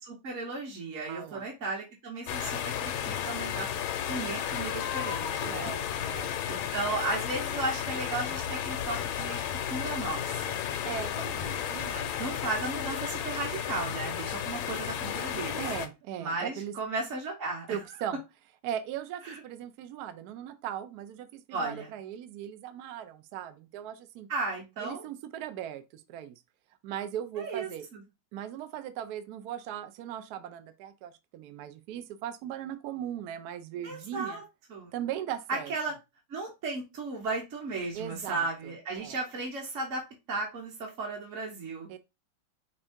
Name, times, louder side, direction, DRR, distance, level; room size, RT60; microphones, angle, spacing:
voice 1, 0.0-3.7 4.1-5.7 6.5-10.6 12.2-15.6 16.2-17.7 19.2-19.4 21.5-21.9 24.3-25.0 27.4-28.0 33.8-34.4 34.7-34.9 35.5-35.9 36.3-40.0 40.3-41.9, right 3 dB, 50° right, 1.0 m, -35 dB
voice 2, 1.1-1.4 5.5-6.3 10.8-12.3 15.0-15.2 15.6-16.7 17.7-18.2 18.6-24.3 24.8-26.4 26.8-27.8 28.3-34.4 34.9-35.7 37.9-39.2 41.9-42.0, right 10 dB, 85° right, 0.8 m, -39 dB
sound 1, 2.3-15.9, left 9 dB, 80° left, 1.4 m, -33 dB
5.2 x 2.7 x 3.5 m
omnidirectional pair, 2.4 m